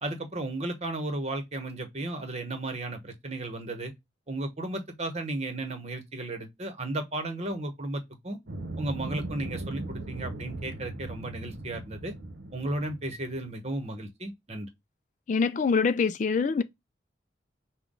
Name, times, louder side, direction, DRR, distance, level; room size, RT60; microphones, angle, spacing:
voice 1, 0.0-3.9 4.3-8.4 8.8-12.1 12.5-14.7, right 2 dB, 35° right, 1.1 m, -34 dB
sound 1, 8.5-13.5, right 2 dB, 65° right, 0.8 m, -38 dB
voice 2, 15.3-16.6, left 5 dB, 40° left, 0.3 m, -24 dB
5.7 x 2.3 x 3.7 m
head